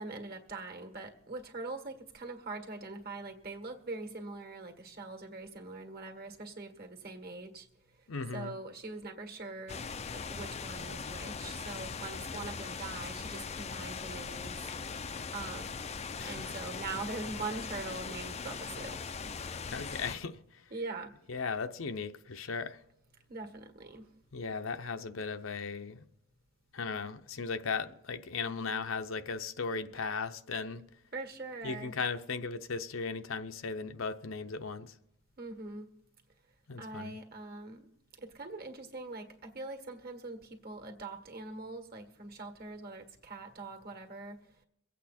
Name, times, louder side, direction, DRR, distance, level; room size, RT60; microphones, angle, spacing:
voice 1, 0.0-7.7 8.3-9.8 10.1-14.6 15.3-15.7 16.2-19.0 20.7-21.1 23.3-24.1 31.1-31.9 35.4-35.9 36.8-37.9 38.2-44.4, right 3 dB, 45° right, 1.8 m, -42 dB
voice 2, 8.1-8.5 16.2-16.4 19.7-20.7 21.3-22.8 24.3-26.1 26.7-30.8 31.6-34.9 36.7-37.2, left 5 dB, 65° left, 0.7 m, -37 dB
sound 1, 9.7-20.2, left 5 dB, 30° left, 0.5 m, -40 dB
23.5 x 8.4 x 4.3 m
head